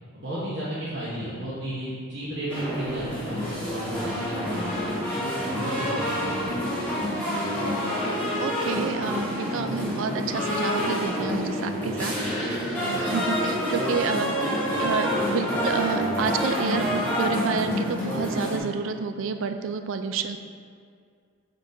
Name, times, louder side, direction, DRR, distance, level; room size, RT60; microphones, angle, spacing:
voice 1, 0.1-5.0 5.5-7.1, right 1 dB, 55° right, -9 dB, 1.0 m, -34 dB
sound 1, 2.5-18.6, equal, 10° left, 1.4 m, -27 dB
voice 2, 8.4-14.5 14.8-20.4, right 5 dB, 75° right, 8 dB, 0.4 m, -29 dB
6.0 x 3.8 x 4.2 m, 2.2 s
head